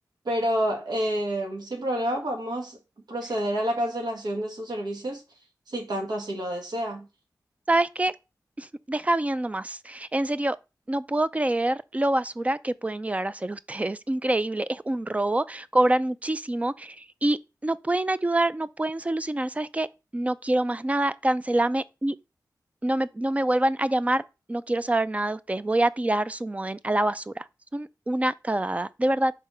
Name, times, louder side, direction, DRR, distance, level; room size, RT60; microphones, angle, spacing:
voice 1, 0.2-2.8 3.1-5.2 5.7-7.1, equal, 85° right, 1.6 m, -28 dB
voice 2, 7.7-8.1 8.6-10.6 10.9-19.9 20.1-22.2 22.8-24.2 24.5-27.4 27.7-29.3, right 1 dB, 20° right, 0.4 m, -26 dB
5.0 x 3.6 x 5.5 m
wide cardioid pair, 75°, 7 cm